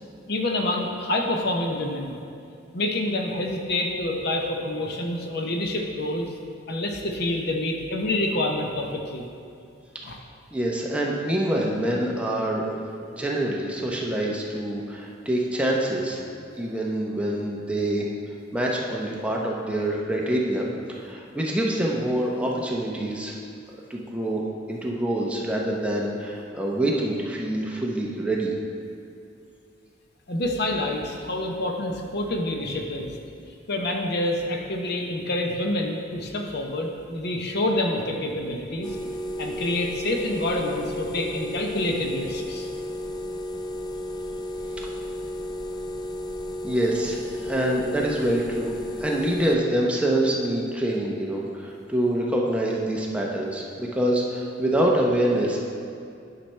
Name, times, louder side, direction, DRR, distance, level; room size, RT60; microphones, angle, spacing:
voice 1, 0.3-2.2 2.7-6.2 6.7-9.3 10.0-10.2 30.3-33.2 33.7-38.9 39.4-42.7, left 1 dB, 60° left, 2 dB, 0.8 m, -27 dB
voice 2, 10.5-12.7 13.1-16.3 16.6-18.1 18.5-23.4 23.9-24.4 24.7-28.5 44.8-44.9 46.6-48.7 49.0-55.6, right 1 dB, 5° right, -3 dB, 0.8 m, -26 dB
sound 1, 38.8-49.6, left 1 dB, 25° left, 0.3 m, -33 dB
10.5 x 5.7 x 3.3 m, 2.5 s
head